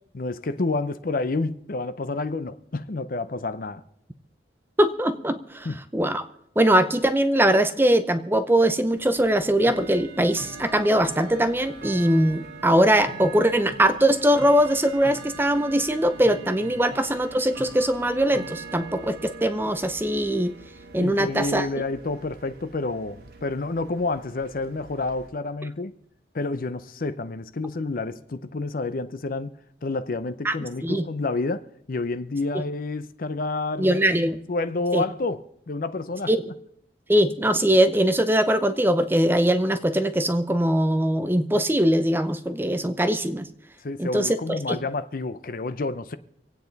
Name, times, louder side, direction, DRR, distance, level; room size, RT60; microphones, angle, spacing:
voice 1, 0.1-3.8 5.6-5.8 21.0-25.9 26.3-29.5 29.8-34.2 34.5-36.3 43.8-46.2, left 3 dB, 50° left, 0.6 m, -29 dB
voice 2, 4.8-5.7 5.9-6.2 6.6-20.5 20.9-21.7 30.4-30.5 30.8-31.1 32.5-32.6 33.8-34.4 34.9-35.0 36.3-36.4 37.1-43.5 44.0-44.8, right 1 dB, 10° right, 0.7 m, -21 dB
Bell / Tick-tock, 8.9-25.3, right 4 dB, 60° right, 1.3 m, -42 dB
26.0 x 9.0 x 4.0 m
head